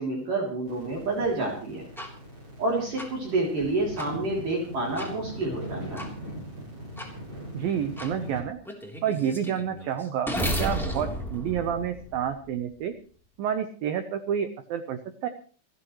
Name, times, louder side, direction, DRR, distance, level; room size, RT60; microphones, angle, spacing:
voice 1, 0.0-1.9 2.6-6.1, right 2 dB, 45° right, -1 dB, 4.4 m, -29 dB
sound 1, 0.6-8.4, equal, 20° right, 6.3 m, -40 dB
sound 2, 2.0-2.1 3.0-3.1 4.0-4.1 5.0-5.1 6.0-6.1 7.0-7.1 8.0-8.1 8.6-12.5, equal, ahead, 2.3 m, -33 dB
voice 2, 7.5-8.6 9.0-12.9 13.4-15.3, right 9 dB, 85° right, 9 dB, 2.0 m, -29 dB
29.5 x 10.5 x 3.1 m, 0.42 s
omnidirectional pair, 5.5 m